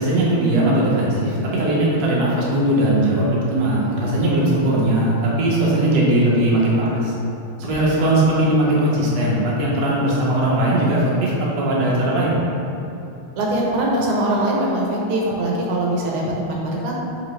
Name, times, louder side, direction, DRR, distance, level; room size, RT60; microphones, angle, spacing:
voice 1, 0.0-7.1 7.6-12.4, right 1 dB, 60° right, -6 dB, 1.3 m, -19 dB
voice 2, 13.4-16.9, right 1 dB, 85° right, -3 dB, 1.5 m, -22 dB
3.8 x 3.4 x 3.1 m, 2.8 s
omnidirectional pair, 2.4 m